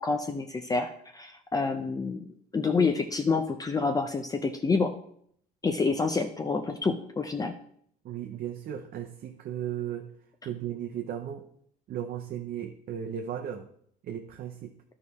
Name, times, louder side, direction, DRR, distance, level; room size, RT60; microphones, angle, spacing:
voice 1, 0.0-2.3 2.5-4.9 5.6-7.5, left 4 dB, 20° left, 6 dB, 0.6 m, -28 dB
voice 2, 8.0-10.1 10.4-11.5 11.9-13.7 14.0-14.7, right 9 dB, 60° right, 3 dB, 0.7 m, -36 dB
11.5 x 4.9 x 4.1 m, 0.67 s
cardioid pair, 110°, 17 cm